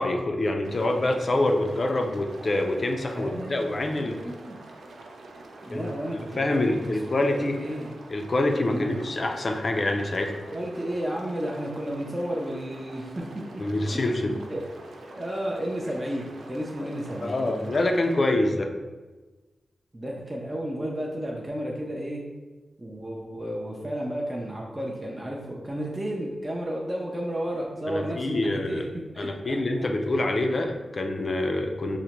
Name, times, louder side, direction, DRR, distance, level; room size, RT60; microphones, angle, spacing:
voice 1, 0.0-4.2 5.7-5.9 6.4-7.6 8.1-10.3 13.6-14.3 17.2-18.7 27.9-28.9 29.2-32.0, left 2 dB, 45° left, 4 dB, 0.4 m, -26 dB
sound 1, 0.6-18.2, right 2 dB, 80° right, 0.4 m, -46 dB
voice 2, 3.2-4.6 5.6-7.0 7.3-7.9 8.7-9.0 10.5-14.7 15.0-17.8 19.9-22.2 22.8-28.8 29.1-29.9, equal, 20° right, -2 dB, 0.4 m, -33 dB
4.8 x 2.1 x 2.9 m, 1.2 s
wide cardioid pair, 105°, 0 cm